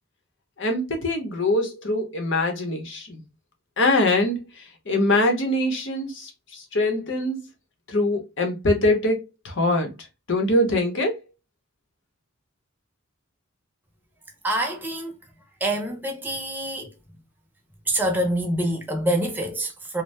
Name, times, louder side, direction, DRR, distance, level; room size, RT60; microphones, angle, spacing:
voice 1, 0.6-3.2 3.8-7.4 7.9-9.9 10.3-11.2, left 1 dB, 60° left, 0.9 m, -23 dB
voice 2, 14.4-15.1 15.6-16.9 17.9-20.0, right 1 dB, 10° right, 0.7 m, -26 dB
2.6 x 2.1 x 3.2 m
head